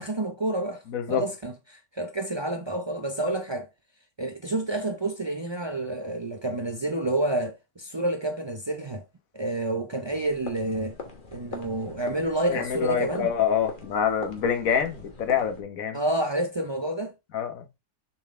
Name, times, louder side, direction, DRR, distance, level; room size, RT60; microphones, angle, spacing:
voice 1, 0.0-0.8 1.1-3.7 4.2-9.0 9.3-11.0 11.3-13.3 15.9-17.1, right 1 dB, 45° right, 0.3 m, -29 dB
voice 2, 0.9-1.2 12.4-16.0 17.3-17.6, left 7 dB, 65° left, 1.5 m, -26 dB
sound 1, 10.1-15.6, left 3 dB, 35° left, 1.3 m, -42 dB
6.8 x 3.9 x 3.6 m
omnidirectional pair, 1.6 m